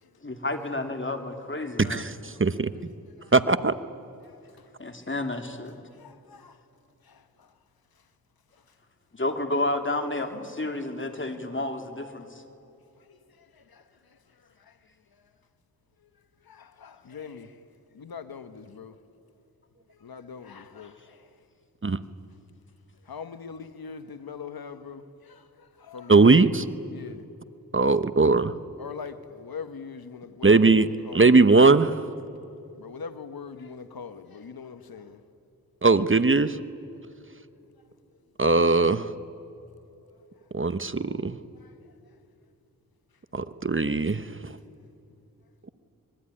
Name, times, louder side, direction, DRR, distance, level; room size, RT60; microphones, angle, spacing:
voice 1, 0.2-2.1 4.8-5.8 9.1-12.4, left 2 dB, 35° left, 3.0 m, -31 dB
voice 2, 1.9-2.7 3.3-3.7 21.8-22.0 26.1-26.6 27.7-28.5 30.4-30.9 31.1-32.0 35.8-36.6 38.4-39.1 40.5-41.4 43.3-44.3, right 3 dB, 35° right, 1.0 m, -19 dB
voice 3, 4.2-4.7 6.0-6.6 7.0-7.5 13.1-13.8 14.7-14.8 16.4-17.6 17.9-18.9 20.0-21.3 23.1-26.4 26.9-27.2 28.8-31.3 32.7-35.2 41.6-41.7, left 6 dB, 90° left, 1.3 m, -42 dB
26.0 x 22.5 x 10.0 m
cardioid pair, 55°, 35 cm